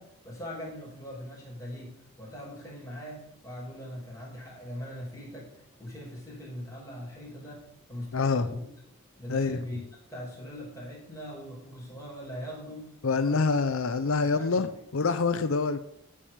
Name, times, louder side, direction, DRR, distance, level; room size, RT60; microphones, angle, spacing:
voice 1, 0.0-1.9 2.2-5.5 5.8-8.7 9.2-9.8 10.1-13.4 14.0-14.6, equal, 15° left, -5 dB, 5.2 m, -41 dB
voice 2, 8.1-8.5 9.3-9.6 13.0-15.8, left 4 dB, 70° left, 10 dB, 0.6 m, -26 dB
13.0 x 5.0 x 7.2 m, 0.76 s
head